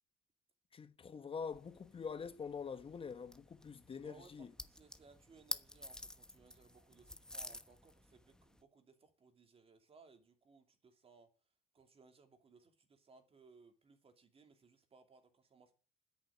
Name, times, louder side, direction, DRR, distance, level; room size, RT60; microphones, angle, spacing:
voice 1, 0.7-4.5, left 6 dB, 30° left, 1.2 m, -45 dB
sound 1, 1.4-8.6, left 1 dB, 5° left, 1.1 m, -50 dB
voice 2, 4.0-11.3 11.7-15.7, right 4 dB, 35° right, 2.8 m, -64 dB
10.0 x 8.7 x 9.9 m
cardioid pair, 110°, 17 cm